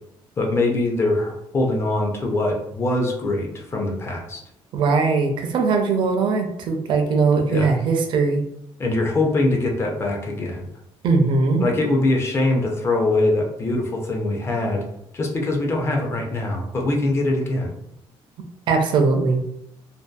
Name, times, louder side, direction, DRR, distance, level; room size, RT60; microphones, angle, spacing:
voice 1, 0.4-4.4 7.5-7.7 8.8-10.7 11.6-14.8 15.1-17.8, left 2 dB, 25° left, 1 dB, 0.4 m, -23 dB
voice 2, 4.7-8.4 11.0-11.7 18.7-19.4, right 4 dB, 50° right, 4 dB, 0.4 m, -20 dB
2.6 x 2.2 x 2.3 m, 0.76 s
cardioid pair, 165°, 11 cm